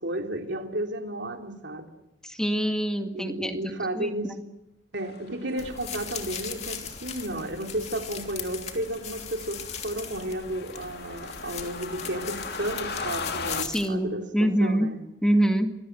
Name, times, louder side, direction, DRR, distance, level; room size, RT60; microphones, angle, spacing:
voice 1, 0.0-1.9 3.1-4.3 4.9-15.0, right 1 dB, 60° right, 3 dB, 3.3 m, -33 dB
voice 2, 2.2-3.6 3.8-4.4 13.6-14.9 15.2-15.7, right 1 dB, 5° left, 5 dB, 2.0 m, -25 dB
sound 1, 5.0-13.6, left 4 dB, 50° left, 2.2 m, -39 dB
sound 2, 5.6-13.9, left 7 dB, 35° left, 2.6 m, -39 dB
27.0 x 21.0 x 7.8 m, 0.97 s
head